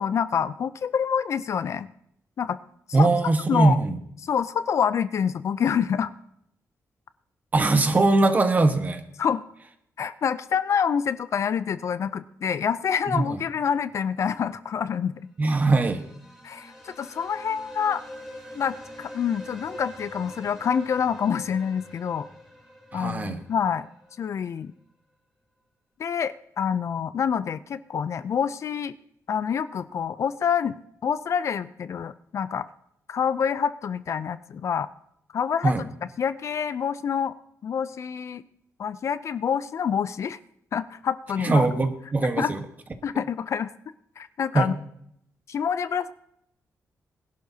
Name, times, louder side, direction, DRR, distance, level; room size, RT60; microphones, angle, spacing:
voice 1, 0.0-1.9 2.4-2.6 2.9-3.1 3.5-3.8 4.2-6.1 9.2-9.4 10.0-15.1 16.4-18.0 18.6-22.3 22.9-23.9 24.2-24.7 26.0-28.9 29.3-32.7 33.1-34.9 35.3-35.7 36.2-37.3 37.6-38.4 38.8-40.4 40.7-41.7 42.4-42.5 43.0-43.7 44.2-44.7 45.5-46.1, left 7 dB, 55° left, 14 dB, 0.4 m, -27 dB
voice 2, 2.9-4.0 7.5-9.0 13.1-13.4 15.4-16.0 22.9-23.4 35.6-35.8 41.4-42.6 44.5-44.7, right 3 dB, 30° right, 7 dB, 1.2 m, -21 dB
sound 1, 15.4-24.2, equal, ahead, 3.2 m, -44 dB
21.0 x 11.5 x 2.8 m, 0.73 s
wide cardioid pair, 140°, 6 cm